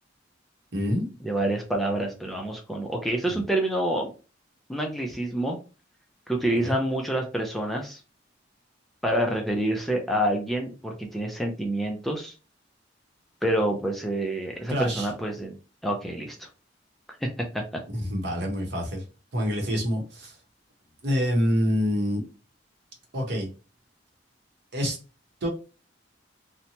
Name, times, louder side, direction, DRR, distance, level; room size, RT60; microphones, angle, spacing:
voice 1, 0.7-1.1 3.3-3.4 6.6-6.8 14.7-15.1 17.9-19.0 19.3-20.3 21.0-22.2 23.1-23.5 24.7-25.0 25.4-25.5, equal, 60° right, 1 dB, 0.9 m, -26 dB
voice 2, 1.2-4.1 4.7-5.6 6.3-8.0 9.0-12.4 13.4-15.5 15.8-16.5 17.1-17.3 17.5-17.6, right 1 dB, ahead, 1 dB, 0.3 m, -27 dB
2.8 x 2.1 x 2.7 m, 0.33 s
head